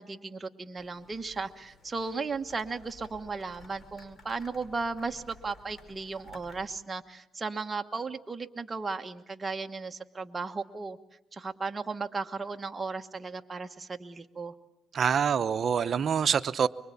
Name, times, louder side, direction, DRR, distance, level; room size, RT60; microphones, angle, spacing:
voice 1, 0.0-11.0 11.3-14.5, right 4 dB, 25° right, 1.2 m, -35 dB
sound 1, 0.8-6.7, left 2 dB, 45° left, 5.4 m, -55 dB
voice 2, 14.9-16.7, right 7 dB, 50° right, 0.9 m, -25 dB
25.0 x 23.0 x 8.5 m
cardioid pair, 90°, 0 cm